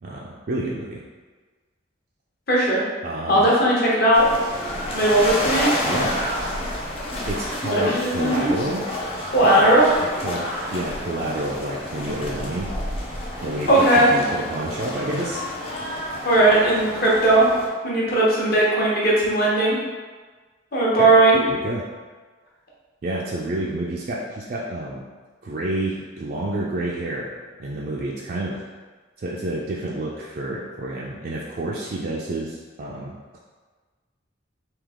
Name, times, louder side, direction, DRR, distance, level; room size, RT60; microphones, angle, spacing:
voice 1, 0.0-1.0 3.0-3.5 5.8-6.1 7.3-8.8 10.2-12.7 13.4-15.5 21.0-21.1 21.3-21.9 23.0-25.0 25.4-27.3 27.6-28.6 29.2-33.4, right 1 dB, 50° right, -4 dB, 0.4 m, -29 dB
voice 2, 2.5-2.9 3.3-4.3 4.9-5.7 7.8-8.5 9.3-9.9 13.7-14.1 16.2-17.4 17.8-19.8 20.7-21.4, right 1 dB, 50° left, -5 dB, 1.0 m, -17 dB
sound 1, 4.1-17.7, left 1 dB, 30° left, 0.5 m, -29 dB
3.6 x 2.8 x 3.5 m, 1.4 s
head